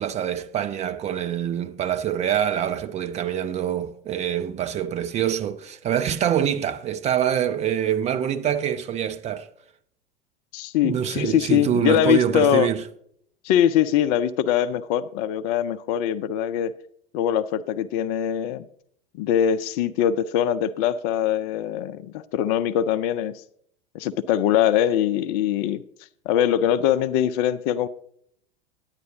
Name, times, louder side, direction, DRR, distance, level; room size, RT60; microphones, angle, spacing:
voice 1, 0.0-9.5 10.8-12.8, right 9 dB, 25° right, 0.5 m, -25 dB
voice 2, 10.5-12.7 13.4-16.7 17.1-18.7 19.1-23.4 23.9-25.8 26.3-27.9, left 10 dB, 40° left, 0.4 m, -22 dB
9.6 x 9.4 x 3.8 m
figure-of-eight pair, 85°, 30 cm